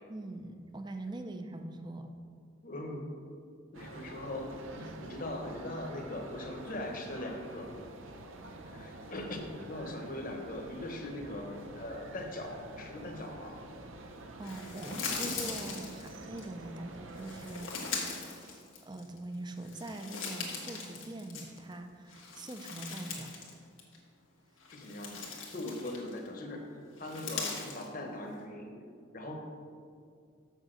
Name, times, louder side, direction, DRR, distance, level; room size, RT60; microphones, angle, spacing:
voice 1, 0.1-2.1 14.4-23.3, right 2 dB, 20° right, 6 dB, 0.6 m, -43 dB
voice 2, 2.6-3.1 3.7-7.7 8.7-13.5 15.5-15.6 24.7-28.7 29.1-29.3, left 1 dB, 45° left, 2 dB, 1.2 m, -40 dB
sound 1, 3.7-17.7, right 2 dB, 90° right, 0.8 m, -48 dB
sound 2, 14.4-16.4 17.2-19.2 19.6-21.7 22.1-23.5 23.8-24.0 24.6-26.3 27.0-27.9, left 4 dB, 90° left, 1.7 m, -40 dB
7.1 x 6.5 x 6.4 m, 2.2 s
head